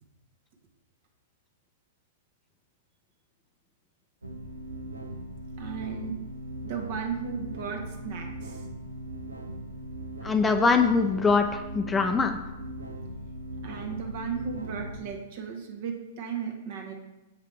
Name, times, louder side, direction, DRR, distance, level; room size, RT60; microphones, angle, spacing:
sound 1, 4.2-15.0, right 1 dB, 90° right, 0.6 m, -39 dB
voice 1, 5.6-6.2 6.6-8.6 13.6-16.9, right 6 dB, 55° right, 2 dB, 1.2 m, -35 dB
voice 2, 10.2-12.4, left 4 dB, 15° left, 6 dB, 0.4 m, -23 dB
6.9 x 4.8 x 3.3 m, 1.0 s
figure-of-eight pair, 105°, 0 cm